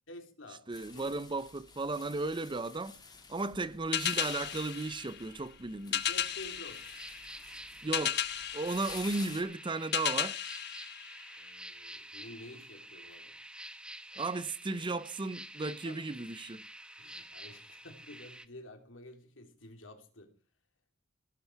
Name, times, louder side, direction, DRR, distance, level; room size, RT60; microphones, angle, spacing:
voice 1, 0.1-1.1 6.1-6.9 11.4-13.4 15.6-16.0 17.0-20.3, left 1 dB, 75° left, 3.2 m, -50 dB
sound 1, 0.7-9.4, left 5 dB, 20° left, 2.5 m, -51 dB
voice 2, 0.7-3.0 3.3-6.1 7.8-8.2 8.5-10.4 14.2-16.7, right 3 dB, 25° right, 0.6 m, -35 dB
sound 2, 3.9-11.8, left 10 dB, 60° left, 1.1 m, -36 dB
sound 3, 6.2-18.5, right 1 dB, 5° right, 1.0 m, -49 dB
17.0 x 12.0 x 4.6 m
head